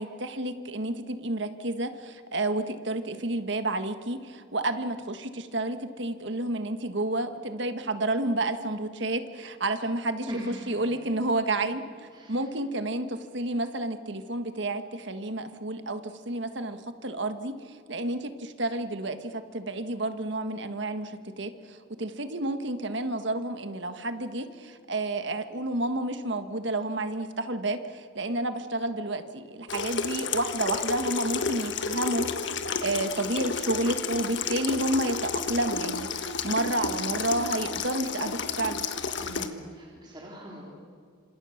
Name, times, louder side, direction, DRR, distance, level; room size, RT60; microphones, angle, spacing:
voice 1, 0.0-10.3 10.7-11.8 12.3-21.1 21.4-32.3 32.8-38.8, right 2 dB, 60° right, 9 dB, 1.6 m, -30 dB
voice 2, 10.3-10.8 12.1-12.5 39.2-40.7, equal, 20° right, -3 dB, 3.5 m, -40 dB
Water tap faucet / Sink (filling or washing), 29.7-39.5, left 5 dB, 60° left, 1.5 m, -31 dB
27.0 x 27.0 x 6.6 m, 2.2 s
head